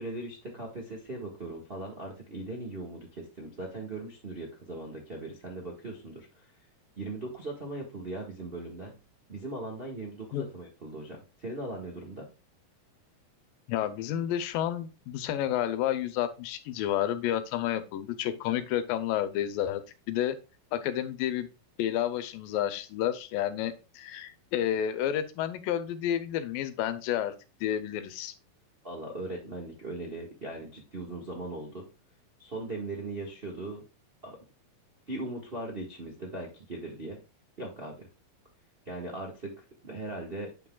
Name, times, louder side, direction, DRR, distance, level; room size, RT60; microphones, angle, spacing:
voice 1, 0.0-6.3 7.0-9.0 9.3-12.3 28.8-31.8 32.4-33.8 34.2-34.4 35.1-37.2 37.6-38.0 38.8-40.5, right 2 dB, 60° right, -1 dB, 0.6 m, -39 dB
voice 2, 13.7-19.8 20.1-20.4 20.7-21.5 21.8-27.3 27.6-28.3, left 11 dB, 85° left, 12 dB, 2.4 m, -30 dB
8.9 x 6.0 x 2.3 m, 0.31 s
omnidirectional pair, 4.0 m